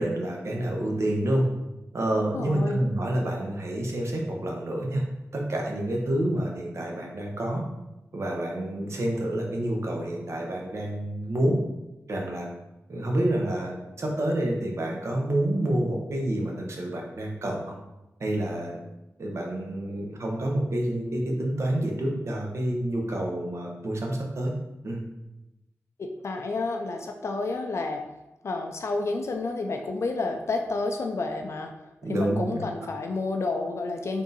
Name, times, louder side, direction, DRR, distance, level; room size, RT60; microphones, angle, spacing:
voice 1, 0.0-1.5 1.9-5.0 5.3-7.6 8.1-11.6 12.1-12.5 12.9-17.8 18.2-18.7 19.2-24.5 24.8-25.0 32.0-32.6, right 1 dB, 60° right, 0 dB, 0.8 m, -28 dB
voice 2, 2.3-2.8 26.0-28.0 28.4-31.7 32.1-34.2, left 3 dB, 60° left, 3 dB, 0.4 m, -30 dB
3.6 x 2.6 x 3.9 m, 0.98 s
cardioid pair, 65°, 5 cm